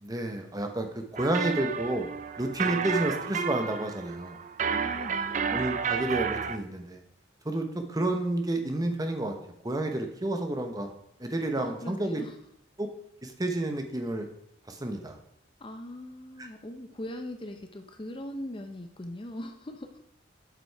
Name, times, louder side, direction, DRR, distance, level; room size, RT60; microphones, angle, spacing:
voice 1, 0.0-2.1 2.4-4.4 5.5-7.0 7.4-9.4 9.6-10.9 11.2-12.2 12.8-12.9 13.2-14.3 14.7-15.2 16.4-16.5, right 1 dB, 20° right, 5 dB, 0.8 m, -30 dB
sound 1, 1.2-6.6, right 6 dB, 40° right, 0.4 m, -31 dB
voice 2, 4.6-5.7 11.5-12.4 15.6-20.0, left 1 dB, 25° left, 6 dB, 0.5 m, -40 dB
8.0 x 5.1 x 4.5 m, 0.77 s
head